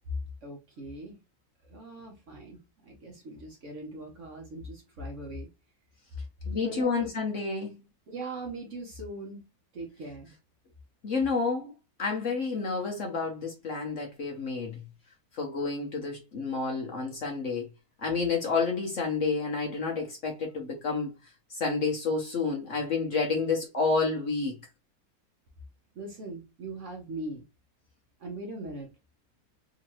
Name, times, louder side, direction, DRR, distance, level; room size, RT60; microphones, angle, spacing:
voice 1, 0.4-1.2 1.6-5.5 6.6-7.1 8.1-9.4 9.7-10.3 25.9-27.4 28.2-28.9, right 2 dB, 50° right, 1.0 m, -40 dB
voice 2, 6.5-7.7 11.0-11.7 12.0-14.8 15.3-17.7 18.0-21.1 21.5-24.6, left 4 dB, 55° left, 1.0 m, -29 dB
3.8 x 2.7 x 3.0 m
omnidirectional pair, 2.0 m